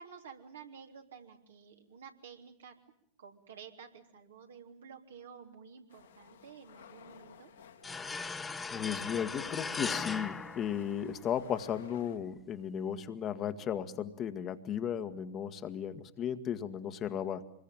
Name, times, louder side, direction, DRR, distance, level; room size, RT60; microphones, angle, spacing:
voice 1, 0.0-2.7 3.2-7.5, right 6 dB, 70° right, 3 dB, 3.3 m, -51 dB
sound 1, 5.9-12.2, left 7 dB, 75° left, 2.9 m, -56 dB
sound 2, 7.8-11.4, left 4 dB, 15° left, 1.4 m, -39 dB
voice 2, 8.7-17.5, left 9 dB, 35° left, 8 dB, 1.7 m, -35 dB
26.0 x 21.5 x 9.1 m, 0.67 s
figure-of-eight pair, 90°, 0 cm